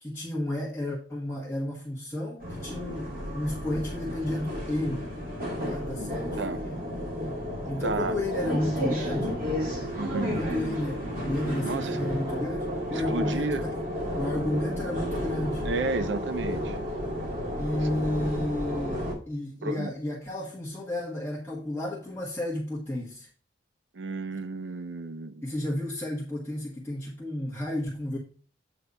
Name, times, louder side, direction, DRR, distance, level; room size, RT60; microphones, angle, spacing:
voice 1, 0.0-5.1 5.6-6.7 7.7-9.4 10.4-13.7 14.2-15.7 17.6-23.3 25.4-28.2, left 1 dB, 10° left, 1.5 m, -32 dB
sound 1, 2.4-19.1, equal, 50° right, 2.5 m, -32 dB
voice 2, 7.8-8.2 9.9-10.4 11.6-12.0 12.9-13.6 15.6-16.8 19.6-19.9 23.9-25.4, right 3 dB, 90° right, 0.6 m, -32 dB
8.5 x 3.4 x 5.2 m
head